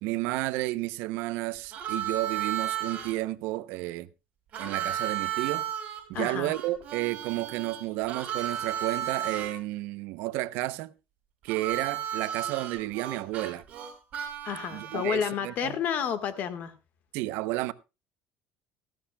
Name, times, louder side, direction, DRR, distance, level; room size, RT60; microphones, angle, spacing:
voice 1, 0.0-4.1 4.6-5.7 6.1-10.9 11.4-13.6 14.7-15.8 17.1-17.7, right 18 dB, 80° right, 0.6 m, -31 dB
Harmonica, 1.7-3.1 4.5-9.5 11.5-15.4, right 10 dB, 40° right, 3.7 m, -34 dB
voice 2, 6.1-6.5 14.4-16.7, left 8 dB, 45° left, 1.5 m, -30 dB
17.5 x 14.5 x 2.2 m
cardioid pair, 160°, 4 cm